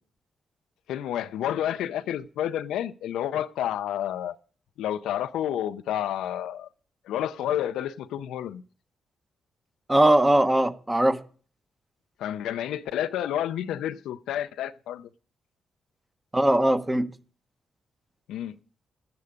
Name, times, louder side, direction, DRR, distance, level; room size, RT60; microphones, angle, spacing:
voice 1, 0.9-4.4 4.8-6.7 7.0-8.6 12.2-15.1 18.3-18.6, left 11 dB, 80° left, 0.4 m, -30 dB
voice 2, 9.9-11.2 16.3-17.1, right 1 dB, 15° right, 1.1 m, -20 dB
11.5 x 9.7 x 5.1 m
supercardioid pair, 50°, 0 cm